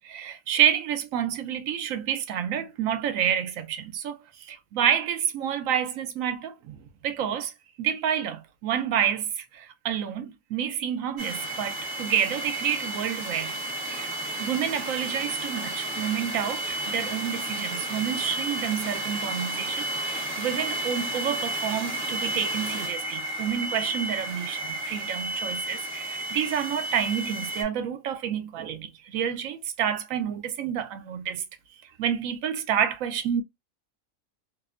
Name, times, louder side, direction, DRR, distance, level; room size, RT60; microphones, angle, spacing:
voice 1, 0.0-4.2 4.5-6.8 7.0-7.5 7.8-9.3 9.6-13.5 13.9-14.1 14.4-24.6 24.8-31.4 32.0-33.4, right 9 dB, 80° right, 1.0 m, -29 dB
sound 1, 11.2-27.6, right 1 dB, 45° right, 0.8 m, -32 dB
2.8 x 2.1 x 2.3 m
omnidirectional pair, 1.4 m